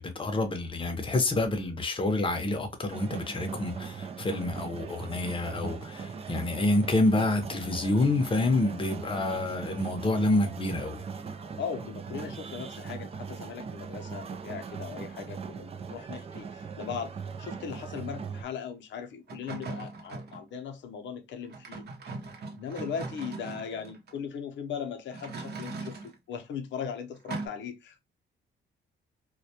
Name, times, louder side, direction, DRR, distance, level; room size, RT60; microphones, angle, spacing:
voice 1, 0.0-11.0, left 2 dB, 25° left, 0.7 m, -28 dB
sound 1, 2.9-18.4, right 5 dB, 30° right, 0.4 m, -40 dB
voice 2, 11.6-21.8 22.5-28.0, left 7 dB, 65° left, 0.6 m, -38 dB
sound 2, 19.3-20.4 21.4-24.1 25.1-26.2 27.3-27.5, right 3 dB, 55° right, 0.7 m, -39 dB
2.2 x 2.2 x 2.7 m
cardioid pair, 90°, 20 cm